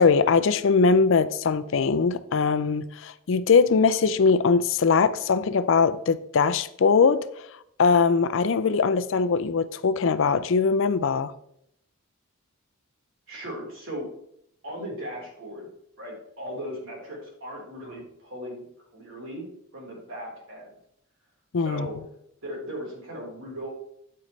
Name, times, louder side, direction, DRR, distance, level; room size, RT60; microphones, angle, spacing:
voice 1, 0.0-7.3 7.8-11.3 21.5-21.9, left 5 dB, 65° left, 0.5 m, -21 dB
voice 2, 13.3-14.1 14.6-15.7 16.0-18.6 18.9-19.4 19.7-20.7 21.6-21.9 22.4-23.7, equal, 70° right, 4.0 m, -37 dB
9.1 x 8.6 x 3.2 m
head